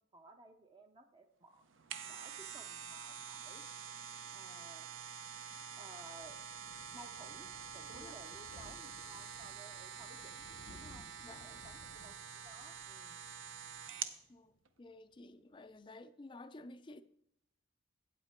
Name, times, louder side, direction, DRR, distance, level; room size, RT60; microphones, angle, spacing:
voice 1, 0.0-1.6 2.1-3.6 4.3-4.9 5.8-6.4 6.9-10.4 10.7-13.2, right 2 dB, 25° right, 0.6 m, -57 dB
sound 1, 1.6-14.2 14.6-14.7, right 7 dB, 75° right, 0.7 m, -47 dB
Thunder, 5.2-14.6 14.9-15.1 15.4-15.5 15.7-15.8, left 2 dB, 75° left, 0.8 m, -60 dB
voice 2, 11.2-11.6 14.3-14.5 14.8-17.0, left 2 dB, 25° left, 0.4 m, -53 dB
8.5 x 8.3 x 4.3 m
head